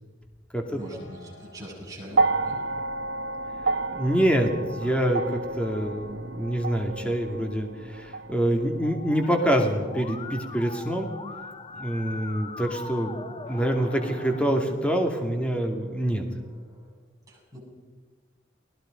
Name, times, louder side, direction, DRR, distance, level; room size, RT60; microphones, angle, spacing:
voice 1, 0.7-2.6 17.3-17.6, equal, 20° right, -3 dB, 7.7 m, -42 dB
sound 1, 0.8-4.4 4.8-8.6 9.2-11.1 13.4-16.9, left 1 dB, 70° left, 6.7 m, -50 dB
sound 2, 2.1-10.4 11.5-11.6, right 3 dB, 75° right, 0.9 m, -31 dB
voice 2, 3.9-11.1 11.7-16.2, right 1 dB, 5° left, 3 dB, 2.5 m, -26 dB
Musical instrument, 8.8-14.4, left 3 dB, 30° left, 1.0 m, -41 dB
29.0 x 20.0 x 5.3 m, 1.4 s
head